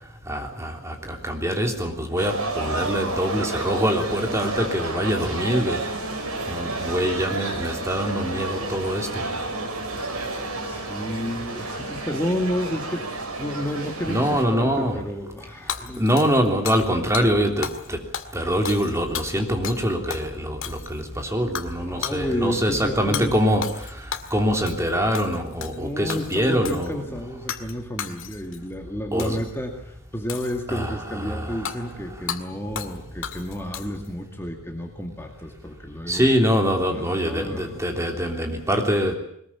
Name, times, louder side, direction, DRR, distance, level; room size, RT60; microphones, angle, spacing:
voice 1, 0.3-5.8 6.5-9.3 14.1-15.0 16.0-18.0 18.3-27.0 29.1-29.4 30.7-32.2 36.1-39.1, equal, 15° right, 3 dB, 3.3 m, -24 dB
sound 1, 2.2-14.4, right 2 dB, 85° right, 5.5 m, -31 dB
voice 2, 10.6-16.0 21.8-23.3 25.7-36.3 36.9-38.1, equal, 10° left, 2 dB, 2.2 m, -31 dB
Hammer / Shatter, 15.7-16.9 17.1-17.3 17.6-17.9 18.1-19.8 20.1-20.3 20.6-21.1 21.6-21.7 22.0-22.2 23.1-23.3 23.6-24.4 24.7-24.9 25.1-25.8 26.1-26.9 27.5-27.7 28.0-28.6 29.2-29.5 30.3-30.9 31.7-31.8 32.3-32.4 32.8-33.0 33.2-34.1, left 8 dB, 65° left, 2.0 m, -33 dB
22.0 x 20.5 x 8.7 m, 0.69 s
head